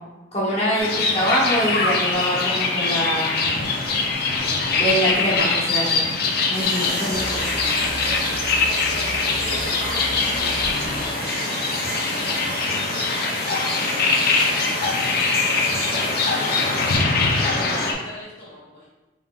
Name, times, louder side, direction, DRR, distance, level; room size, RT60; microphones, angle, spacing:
voice 1, 0.3-3.3 4.7-6.0 6.5-7.4, equal, 35° left, -7 dB, 1.2 m, -24 dB
sound 1, 0.8-17.9, left 4 dB, 55° left, 0.5 m, -23 dB
sound 2, 2.0-2.9 3.6-6.1 6.6-11.1, right 1 dB, 85° right, 0.7 m, -38 dB
voice 2, 6.4-7.1 7.7-12.4 12.8-17.0 17.5-18.9, left 1 dB, 70° left, -10 dB, 0.9 m, -40 dB
sound 3, 6.5-17.0, right 1 dB, 55° right, 1.4 m, -31 dB
3.7 x 3.7 x 2.3 m, 1.1 s
head